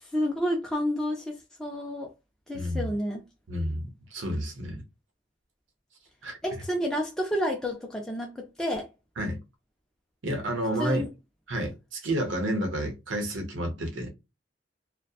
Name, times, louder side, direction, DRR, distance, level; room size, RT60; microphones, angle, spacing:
voice 1, 0.0-2.1 2.5-3.2 6.4-8.9 10.8-11.1, equal, 5° left, 0.4 m, -30 dB
voice 2, 2.5-2.9 3.5-4.8 6.2-6.4 9.2-9.4 10.2-11.1 11.5-14.1, right 1 dB, 85° right, 0.8 m, -30 dB
2.7 x 2.1 x 2.3 m
head